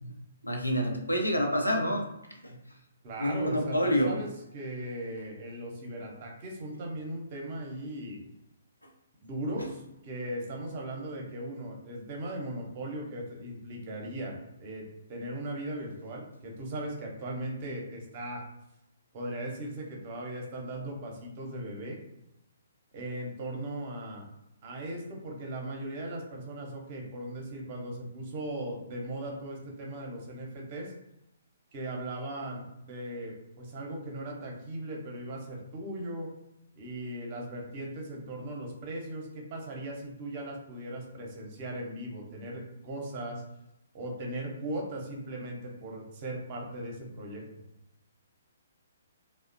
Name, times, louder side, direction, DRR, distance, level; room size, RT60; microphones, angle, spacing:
voice 1, 0.4-2.0 2.4-2.6 3.2-4.2 9.6-9.7, equal, 85° left, 2 dB, 0.5 m, -28 dB
voice 2, 3.0-4.3 4.5-8.2 9.2-9.8 10.0-14.8 15.1-18.4 19.1-22.0 22.9-24.3 24.6-30.9 31.7-36.3 36.8-43.4 43.9-47.4, right 1 dB, 35° right, 0 dB, 0.7 m, -38 dB
2.7 x 2.0 x 2.5 m, 0.85 s
figure-of-eight pair, 130°, 0 cm